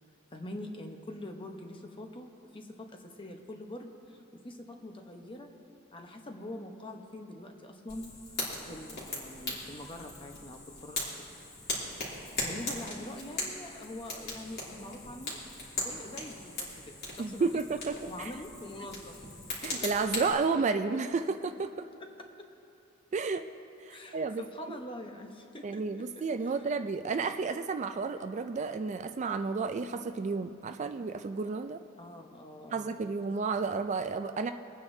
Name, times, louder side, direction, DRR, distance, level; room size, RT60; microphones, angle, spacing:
voice 1, 0.3-5.5 5.9-8.1 8.7-11.3 11.9-15.4 15.7-17.6 18.1-19.3 19.8-19.9 20.1-20.2 20.5-20.6 22.0-22.5 23.9-26.5 32.0-33.1, left 1 dB, 25° left, 4 dB, 0.9 m, -44 dB
Fire, 7.9-20.3, left 2 dB, 50° left, 2.9 m, -39 dB
voice 2, 17.2-18.3 19.6-21.9 23.1-23.4 23.8-24.8 25.6-31.8 32.7-34.5, right 4 dB, 35° right, 8 dB, 0.3 m, -32 dB
23.5 x 9.3 x 2.7 m, 2.7 s
head